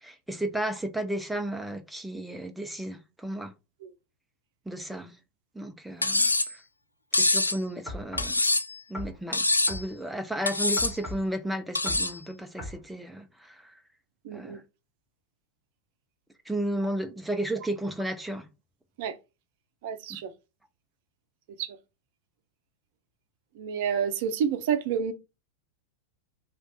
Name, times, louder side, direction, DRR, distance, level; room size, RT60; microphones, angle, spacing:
voice 1, 0.0-3.5 4.7-5.1 5.6-6.6 7.1-8.4 8.9-13.7 14.3-14.6 16.5-18.5, right 1 dB, 5° right, 0.4 m, -33 dB
Cutlery silverware, 6.0-6.5 7.1-7.6 8.2-8.8 9.3-9.8 10.5-11.0 11.7-12.2, left 2 dB, 80° left, 0.3 m, -25 dB
sound 1, 7.9-8.4 8.9-9.2 9.7-9.9 10.8-11.3 11.9-12.1 12.6-12.8, left 1 dB, 20° left, 1.9 m, -37 dB
voice 2, 14.2-14.6 19.0-19.1 19.8-20.3 21.6-21.8 23.6-25.1, right 7 dB, 50° right, 0.5 m, -29 dB
3.2 x 2.9 x 3.9 m
figure-of-eight pair, 90°, 0 cm